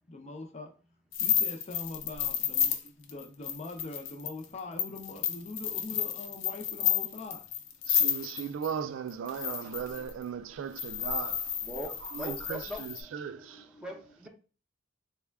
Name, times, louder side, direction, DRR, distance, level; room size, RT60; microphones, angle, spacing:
voice 1, 0.1-0.7 1.2-7.4, left 3 dB, 35° left, 0.5 m, -42 dB
sound 1, 1.1-8.7 9.3-10.1 10.8-13.0, left 9 dB, 80° left, 0.5 m, -31 dB
voice 2, 7.9-11.5 12.0-13.7, right 7 dB, 85° right, 0.3 m, -37 dB
voice 3, 9.6-10.1 11.6-14.3, equal, 5° right, 0.7 m, -43 dB
3.4 x 2.2 x 3.3 m
head